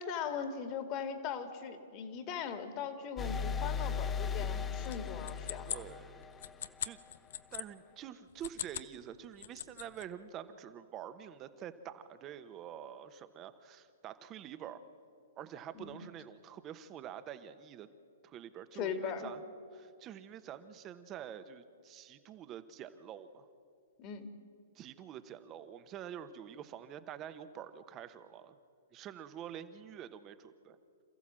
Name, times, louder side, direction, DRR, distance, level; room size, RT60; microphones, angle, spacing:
voice 1, 0.0-5.8 15.7-16.0 18.7-19.3 24.0-24.3, left 7 dB, 35° left, 7 dB, 2.2 m, -39 dB
sound 1, 3.2-6.9, left 6 dB, 15° left, 0.6 m, -37 dB
sound 2, 4.8-7.7 8.3-8.9 9.2-10.1, left 10 dB, 60° left, 0.7 m, -41 dB
voice 2, 5.7-6.4 6.8-7.0 7.5-14.8 15.4-17.9 18.2-19.4 19.7-23.5 24.7-28.6 28.9-30.8, right 10 dB, 30° right, 11 dB, 1.2 m, -47 dB
27.5 x 14.5 x 7.6 m, 2.5 s
hypercardioid pair, 120°, 0 cm